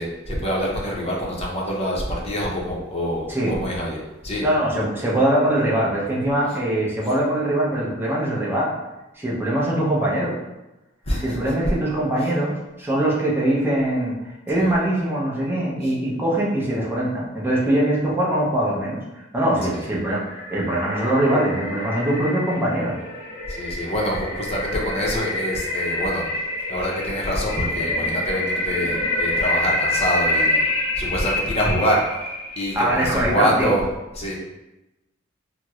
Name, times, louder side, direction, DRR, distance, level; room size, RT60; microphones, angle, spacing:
voice 1, 0.0-4.4 11.1-11.5 12.2-12.3 14.5-14.7 15.8-15.9 19.7-19.9 23.5-26.4 26.7-30.6 31.0-32.2 32.6-33.8 34.2-34.3, equal, 30° left, -3 dB, 0.6 m, -25 dB
voice 2, 4.4-8.7 9.2-10.4 11.2-20.2 20.5-23.0 32.7-33.7, right 1 dB, 10° right, -5 dB, 0.6 m, -22 dB
sound 1, 19.7-33.0, left 1 dB, 85° left, 0.7 m, -27 dB
4.4 x 2.0 x 2.3 m, 1.0 s
head